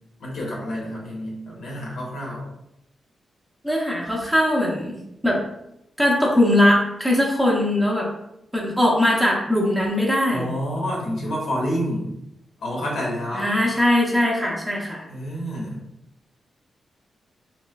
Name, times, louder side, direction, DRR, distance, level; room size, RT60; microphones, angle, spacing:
voice 1, 0.2-2.4 10.3-12.1 12.6-13.6 15.1-15.8, equal, 80° left, -3 dB, 1.1 m, -28 dB
voice 2, 3.6-5.0 5.2-5.4 6.0-8.1 8.5-10.5 13.3-15.0, left 1 dB, ahead, -3 dB, 0.6 m, -20 dB
3.3 x 3.0 x 2.3 m, 0.82 s
wide cardioid pair, 135°, 0 cm